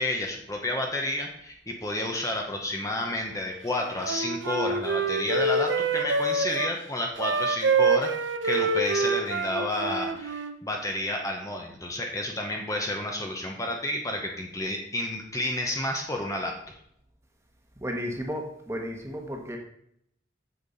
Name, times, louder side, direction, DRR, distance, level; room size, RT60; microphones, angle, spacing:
voice 1, 0.0-16.5, left 1 dB, 20° left, 1 dB, 0.9 m, -30 dB
Wind instrument woodwind instrument, 3.8-6.7 7.2-10.6, right 3 dB, 90° right, 0.7 m, -26 dB
voice 2, 17.8-19.6, equal, 15° right, 2 dB, 1.2 m, -33 dB
8.6 x 7.3 x 4.1 m, 0.70 s
head